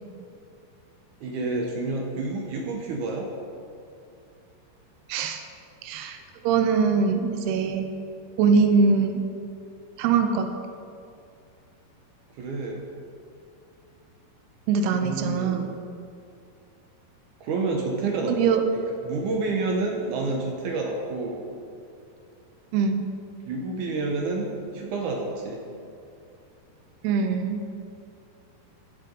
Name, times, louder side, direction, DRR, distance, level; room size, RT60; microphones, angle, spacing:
voice 1, 1.2-3.3 12.3-12.8 14.8-15.7 17.4-18.4 18.7-21.5 23.5-25.6, right 3 dB, 70° right, 0 dB, 2.0 m, -29 dB
voice 2, 5.1-5.4 5.8-6.2 6.4-7.9 8.4-9.2 10.0-10.5 14.7-15.7 18.2-18.6 22.7-23.0 27.0-27.7, right 5 dB, 90° right, 6 dB, 2.7 m, -22 dB
15.0 x 6.8 x 5.2 m, 2.5 s
omnidirectional pair, 4.5 m